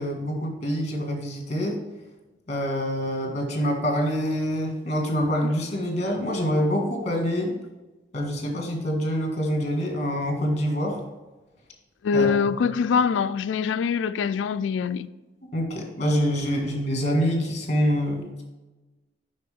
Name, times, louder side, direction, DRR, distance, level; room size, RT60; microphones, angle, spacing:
voice 1, 0.0-1.8 2.5-7.5 8.1-11.0 12.1-12.3 15.5-18.4, equal, 40° left, 1.9 m, -26 dB
voice 2, 12.0-15.1, left 6 dB, 75° left, 0.3 m, -24 dB
7.7 x 5.9 x 3.6 m
head